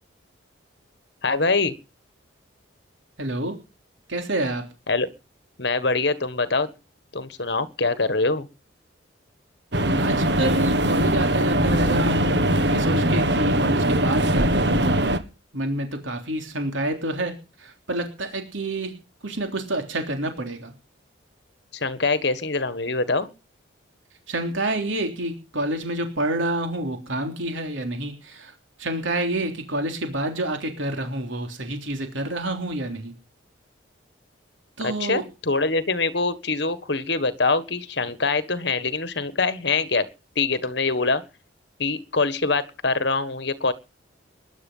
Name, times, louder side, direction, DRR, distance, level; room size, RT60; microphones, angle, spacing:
voice 1, 1.2-1.7 4.9-5.1 5.6-6.7 7.1-8.5 21.7-23.3 34.8-40.1 40.3-41.2 41.8-43.7, left 3 dB, 60° left, 13 dB, 1.6 m, -24 dB
voice 2, 3.2-3.5 4.1-4.6 9.9-15.0 15.5-18.9 19.2-20.7 24.3-28.5 28.8-33.1 34.8-35.2, right 1 dB, 75° right, 5 dB, 3.4 m, -28 dB
sound 1, 9.7-15.2, right 1 dB, 60° right, 1.6 m, -21 dB
20.5 x 11.0 x 5.6 m, 0.33 s
head